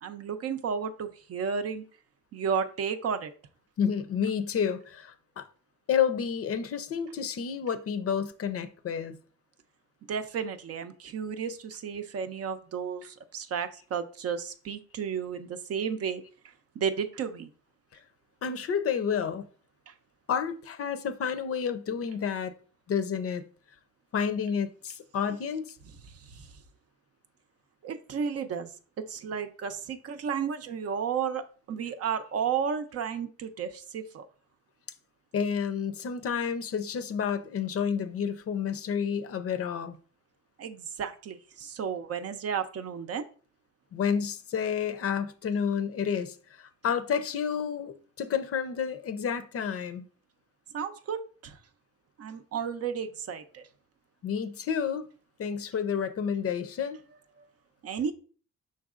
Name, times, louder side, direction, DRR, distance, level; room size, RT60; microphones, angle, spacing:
voice 1, 0.0-1.8 2.3-3.3 10.1-16.2 16.8-17.5 19.9-20.0 26.2-26.5 27.8-28.7 29.0-34.3 40.6-43.2 50.7-51.6 52.2-53.6 57.8-58.1, right 7 dB, 55° right, 0.6 m, -33 dB
voice 2, 3.8-5.5 5.9-9.2 18.4-19.5 20.3-22.5 22.9-23.4 24.1-25.8 35.3-40.0 43.9-50.0 54.2-55.1 55.4-57.0, left 7 dB, 50° left, 0.6 m, -30 dB
5.4 x 3.9 x 2.4 m
cardioid pair, 90°, 30 cm